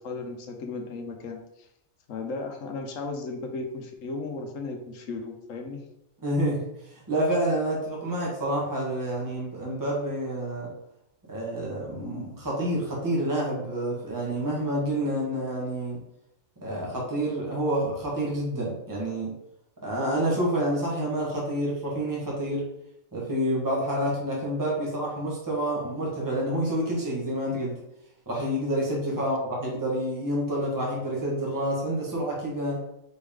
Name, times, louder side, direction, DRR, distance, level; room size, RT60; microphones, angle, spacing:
voice 1, 0.0-1.7 2.1-5.8 29.1-29.2, left 3 dB, 70° left, 4 dB, 1.1 m, -35 dB
voice 2, 6.2-6.6 6.9-10.7 11.3-16.0 16.6-19.3 19.8-22.6 23.1-27.8 28.3-32.8, right 1 dB, 15° right, -4 dB, 1.2 m, -28 dB
4.4 x 3.5 x 3.5 m, 0.79 s
omnidirectional pair, 1.5 m